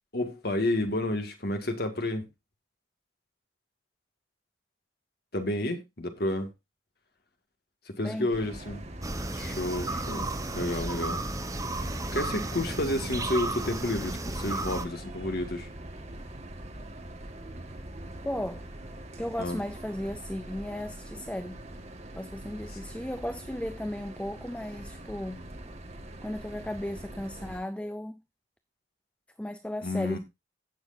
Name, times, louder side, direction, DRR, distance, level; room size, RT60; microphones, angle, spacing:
voice 1, 0.1-2.3 5.3-6.5 7.9-8.8 9.3-11.2 12.1-15.7 19.4-19.6 29.8-30.2, left 1 dB, 55° left, 1.9 m, -30 dB
sound 1, 8.3-27.6, right 1 dB, 35° right, 1.7 m, -43 dB
sound 2, 9.0-14.9, right 2 dB, 20° right, 1.0 m, -33 dB
voice 2, 18.2-18.7 19.2-21.6 22.2-25.4 26.2-28.2 29.4-30.2, left 1 dB, 5° left, 0.5 m, -35 dB
16.5 x 6.4 x 2.6 m
head